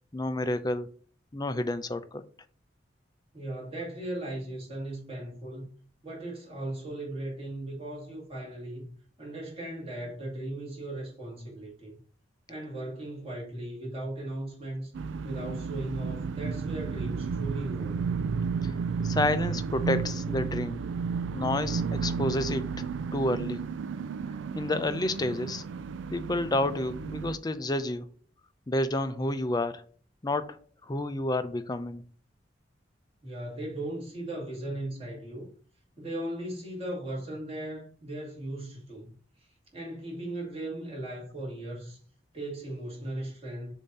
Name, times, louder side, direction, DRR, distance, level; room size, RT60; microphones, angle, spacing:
voice 1, 0.1-0.9 1.3-2.2 19.0-20.8 21.3-22.7 23.1-23.6 24.5-25.6 26.1-28.1 28.7-29.8 30.2-30.6 30.9-32.0, left 1 dB, 20° left, 0.5 m, -29 dB
voice 2, 3.3-5.7 6.0-8.9 9.2-12.0 12.5-14.9 15.2-18.0 33.2-35.5 36.0-39.1 39.4-42.0 42.3-43.7, right 1 dB, 30° right, 2.2 m, -37 dB
sound 1, 15.0-27.4, right 5 dB, 85° right, 0.3 m, -32 dB
7.1 x 2.8 x 5.4 m
head